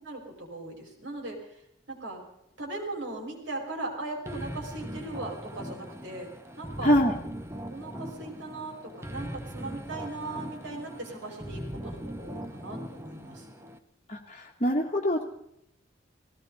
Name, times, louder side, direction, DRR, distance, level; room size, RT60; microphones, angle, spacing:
voice 1, 0.0-1.4 1.9-2.2 2.6-6.3 6.6-7.0 7.7-13.5, right 2 dB, 75° right, 1 dB, 5.4 m, -38 dB
sound 1, 4.3-13.8, equal, 15° right, 1.0 m, -40 dB
voice 2, 6.8-7.1 14.1-15.2, equal, 35° left, -2 dB, 1.5 m, -24 dB
19.5 x 17.0 x 4.2 m, 0.77 s
head